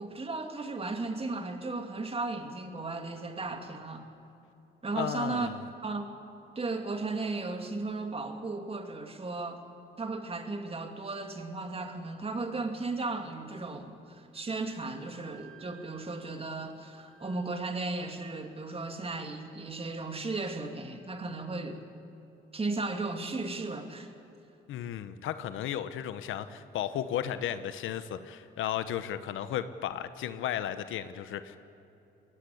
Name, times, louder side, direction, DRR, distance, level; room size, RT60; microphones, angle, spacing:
voice 1, 0.0-4.1 4.8-5.5 5.8-6.1 6.6-9.6 10.0-21.8 22.5-24.1, right 3 dB, 30° right, 5 dB, 2.6 m, -35 dB
voice 2, 4.9-5.6 24.7-31.6, left 10 dB, 85° left, 12 dB, 1.0 m, -34 dB
Wind instrument woodwind instrument, 14.4-21.8, right 4 dB, 5° left, 4.3 m, -61 dB
21.5 x 17.5 x 8.5 m, 2.9 s
cardioid pair, 90°, 20 cm